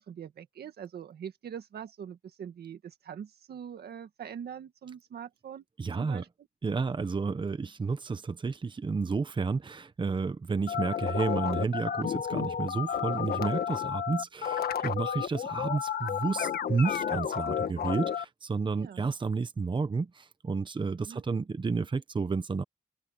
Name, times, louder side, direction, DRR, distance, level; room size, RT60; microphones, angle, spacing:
voice 1, 0.0-5.6 6.0-6.3 18.7-19.0 20.9-21.2, right 8 dB, 85° right, 1.8 m, -43 dB
voice 2, 5.8-6.2 6.6-22.6, right 4 dB, 30° right, 0.9 m, -31 dB
sound 1, 10.7-18.2, left 8 dB, 80° left, 1.6 m, -31 dB
wide cardioid pair, 120°, 16 cm